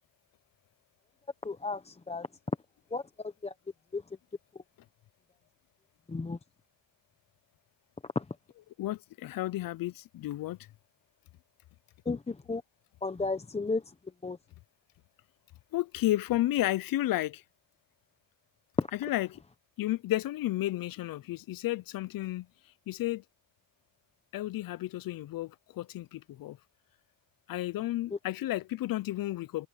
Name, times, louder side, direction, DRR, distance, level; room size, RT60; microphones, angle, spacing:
voice 1, 1.4-2.3 2.9-3.5 3.9-4.0 4.5-4.6 6.1-6.4 8.1-8.3 12.1-12.6 13.0-13.9 14.2-14.4 18.8-18.9 28.1-28.2, left 3 dB, 20° left, 0.8 m, -33 dB
voice 2, 8.8-10.6 15.7-17.4 19.0-19.4 19.8-22.5 22.9-23.2 24.3-26.6 27.5-29.7, left 15 dB, 90° left, 0.5 m, -32 dB
wide cardioid pair, 135°, 33 cm